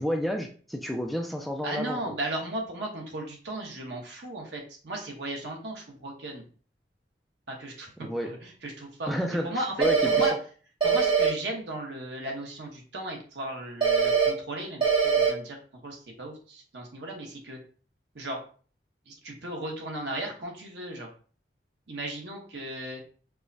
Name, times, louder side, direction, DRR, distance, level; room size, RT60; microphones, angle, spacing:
voice 1, 0.0-2.0 8.0-8.3 9.1-10.3, equal, ahead, 3 dB, 0.3 m, -30 dB
voice 2, 1.6-6.4 7.5-8.1 8.4-9.1 9.4-10.3 10.8-15.6 15.8-17.6 18.1-18.4 19.1-21.1 21.9-23.0, right 1 dB, 80° right, 1 dB, 1.0 m, -36 dB
sound 1, 9.8-10.3 10.8-11.3 13.8-14.3 14.8-15.3, right 6 dB, 30° right, 0.9 m, -22 dB
4.6 x 2.1 x 2.6 m, 0.41 s
head